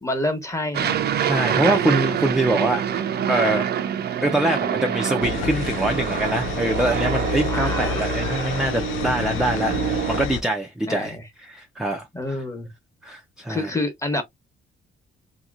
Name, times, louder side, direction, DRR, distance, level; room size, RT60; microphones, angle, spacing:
voice 1, 0.0-1.0 1.5-1.8 7.5-8.1 10.9-11.2 12.1-12.7 13.5-14.2, left 1 dB, 15° left, 1.1 m, -28 dB
Aircraft, 0.7-10.3, right 9 dB, 55° right, 0.5 m, -26 dB
voice 2, 1.3-3.0 3.3-3.7 4.2-11.1 11.4-12.4 13.0-13.7, right 1 dB, 5° right, 0.5 m, -24 dB
sound 1, 5.2-10.4, left 9 dB, 85° left, 0.5 m, -29 dB
2.9 x 2.8 x 2.4 m
cardioid pair, 90°, 20 cm